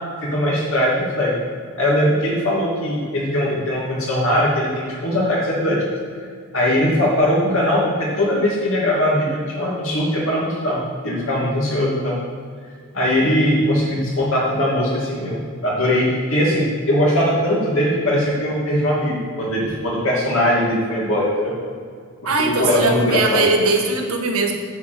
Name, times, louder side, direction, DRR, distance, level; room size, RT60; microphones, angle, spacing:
voice 1, 0.2-1.4 1.8-5.8 6.5-12.1 12.9-21.5 22.4-23.5, equal, 65° left, -5 dB, 2.6 m, -20 dB
voice 2, 22.2-24.6, right 3 dB, 75° right, 2 dB, 1.6 m, -20 dB
9.4 x 5.2 x 7.7 m, 2.1 s
head